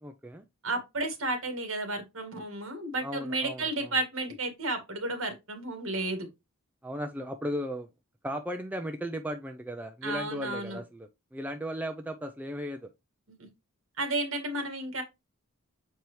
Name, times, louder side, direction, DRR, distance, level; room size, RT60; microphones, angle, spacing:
voice 1, 0.0-0.4 3.0-3.9 6.8-7.9 8.2-12.9, equal, 5° right, 0.4 m, -36 dB
voice 2, 0.6-6.3 10.0-10.8 14.0-15.0, right 2 dB, 65° right, 1.9 m, -32 dB
6.8 x 4.5 x 3.1 m
head